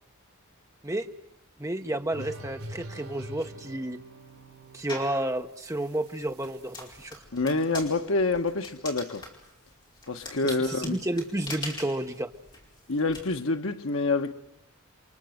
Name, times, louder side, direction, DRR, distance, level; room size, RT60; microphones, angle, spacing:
voice 1, 1.6-4.0 4.7-7.2 10.4-12.3, right 1 dB, 15° right, 1.0 m, -31 dB
sound 1, 2.1-7.1, right 1 dB, 75° right, 3.6 m, -45 dB
sound 2, 4.9-5.2 5.8-13.2, left 2 dB, 20° left, 4.8 m, -42 dB
voice 2, 7.3-9.2 10.1-11.0 12.9-14.3, left 3 dB, 65° left, 1.3 m, -27 dB
29.5 x 23.5 x 7.9 m
head